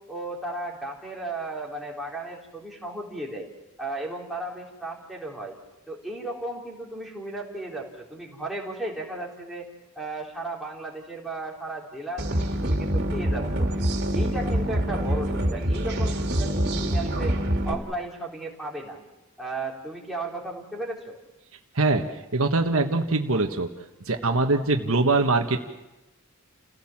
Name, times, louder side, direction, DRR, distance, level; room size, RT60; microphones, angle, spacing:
voice 1, 0.1-3.5 3.8-5.6 5.9-9.7 10.0-13.7 14.1-17.4 17.6-19.0 19.4-21.2, right 2 dB, ahead, -3 dB, 3.8 m, -35 dB
sound 1, 12.2-17.7, right 1 dB, 50° right, 2.8 m, -25 dB
voice 2, 22.3-23.7 24.1-25.6, right 3 dB, 70° right, 5 dB, 1.5 m, -22 dB
29.0 x 16.5 x 7.4 m, 1.0 s
head